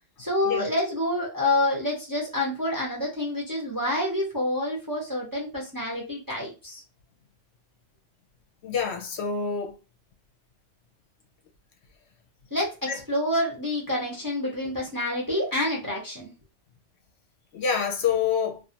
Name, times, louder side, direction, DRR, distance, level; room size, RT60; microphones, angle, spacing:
voice 1, 0.2-6.8 12.5-16.3, left 1 dB, 25° right, 0.5 m, -28 dB
voice 2, 8.6-9.7 12.9-13.0 17.5-18.6, left 7 dB, 70° left, 0.8 m, -27 dB
2.4 x 2.3 x 2.7 m
omnidirectional pair, 1.3 m